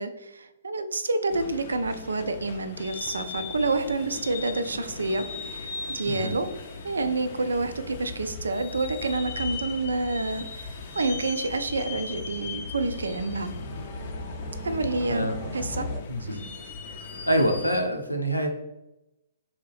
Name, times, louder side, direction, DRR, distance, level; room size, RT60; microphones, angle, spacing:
voice 1, 0.0-6.5 6.8-13.5 14.6-15.9 16.2-16.4, right 3 dB, 70° right, 10 dB, 0.4 m, -28 dB
sound 1, 1.3-17.8, left 4 dB, 45° left, 0.4 m, -39 dB
voice 2, 6.0-6.4 15.1-15.4 16.1-16.4 17.3-18.5, equal, 90° left, 3 dB, 0.6 m, -25 dB
sound 2, 7.5-16.0, left 1 dB, ahead, 0.8 m, -39 dB
3.6 x 2.7 x 3.3 m, 0.92 s
figure-of-eight pair, 120°, 0 cm